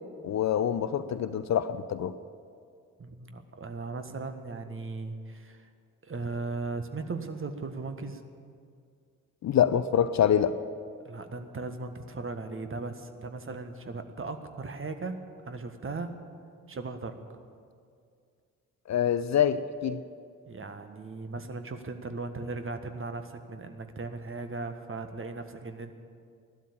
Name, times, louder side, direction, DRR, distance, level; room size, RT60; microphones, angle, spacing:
voice 1, 0.2-2.1 9.4-10.5 18.9-20.0, left 9 dB, 45° left, 13 dB, 0.7 m, -25 dB
voice 2, 3.0-5.7 6.0-8.2 11.0-15.2 15.4-16.1 16.7-17.1 20.4-25.9, right 3 dB, 30° right, 7 dB, 1.5 m, -37 dB
16.0 x 12.0 x 7.2 m, 2.2 s
figure-of-eight pair, 40°, 41 cm